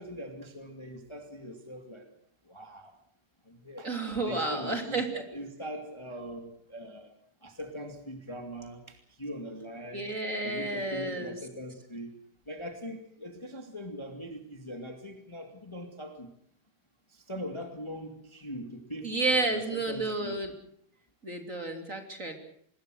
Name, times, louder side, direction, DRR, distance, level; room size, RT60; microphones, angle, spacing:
voice 1, 0.0-2.1 2.4-2.9 3.4-3.9 4.2-7.1 7.4-10.1 10.4-12.1 12.4-16.3 17.1-20.3, equal, 25° left, 5 dB, 0.6 m, -41 dB
voice 2, 3.8-5.2 9.9-11.4 19.0-20.5 21.2-22.3, right 3 dB, 20° right, 4 dB, 2.6 m, -31 dB
26.5 x 21.0 x 6.4 m, 0.66 s
omnidirectional pair, 5.3 m